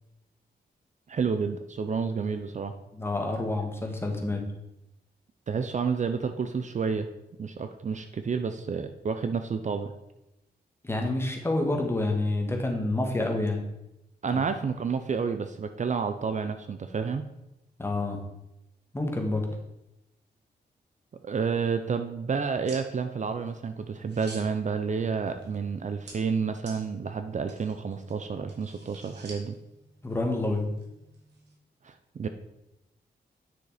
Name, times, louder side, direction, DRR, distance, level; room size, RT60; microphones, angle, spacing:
voice 1, 1.1-2.7 5.5-7.1 7.4-9.9 14.2-17.2 21.2-29.6 31.8-32.3, right 5 dB, 45° right, 8 dB, 0.6 m, -30 dB
voice 2, 2.9-4.4 10.8-13.6 14.3-14.4 17.8-18.2 18.9-19.5 30.0-30.7, left 2 dB, 15° left, 1 dB, 1.8 m, -28 dB
sound 1, 22.6-31.6, right 2 dB, 85° right, 2.5 m, -52 dB
9.8 x 6.4 x 5.0 m, 0.90 s
wide cardioid pair, 130°, 17 cm